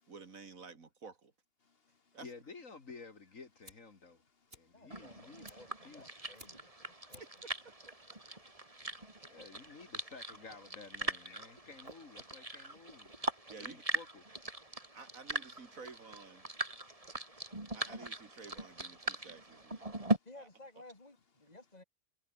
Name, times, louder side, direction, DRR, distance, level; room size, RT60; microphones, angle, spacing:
voice 1, 0.1-1.3 2.1-2.3 7.2-7.3 13.5-13.8 14.9-16.5 17.7-20.5, right 4 dB, 70° right, 2.8 m, -52 dB
voice 2, 1.6-2.2 4.0-4.8 6.9-7.1 8.4-8.6 9.0-9.1 9.7-9.8 11.1-11.7 12.2-12.5 13.0-13.5 16.8-17.2 17.6-17.7 19.0-19.2, left 5 dB, 45° left, 1.6 m, -67 dB
voice 3, 2.2-4.2 4.5-6.2 9.2-13.1 13.6-14.2, left 4 dB, 65° left, 2.7 m, -53 dB
Fire, 3.6-13.7, right 1 dB, 45° right, 6.7 m, -63 dB
voice 4, 4.7-6.7 7.1-7.2 20.2-21.8, left 2 dB, 30° left, 2.9 m, -56 dB
sound 1, 4.9-20.2, right 2 dB, 25° right, 3.1 m, -41 dB
omnidirectional pair, 1.5 m